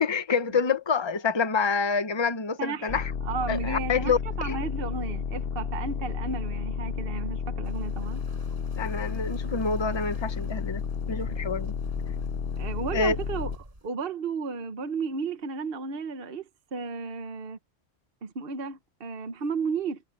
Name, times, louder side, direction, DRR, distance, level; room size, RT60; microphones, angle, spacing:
voice 1, 0.0-3.0 3.5-4.2 4.4-4.6 8.7-10.8 11.1-11.7 12.9-13.2, left 5 dB, 25° left, 1.0 m, -27 dB
voice 2, 2.6-8.2 12.6-17.6 18.2-20.0, right 4 dB, 50° right, 1.3 m, -33 dB
sound 1, 2.9-13.6, left 6 dB, 55° left, 1.1 m, -32 dB
sound 2, 7.6-13.9, right 1 dB, 30° right, 7.6 m, -49 dB
omnidirectional pair, 1.2 m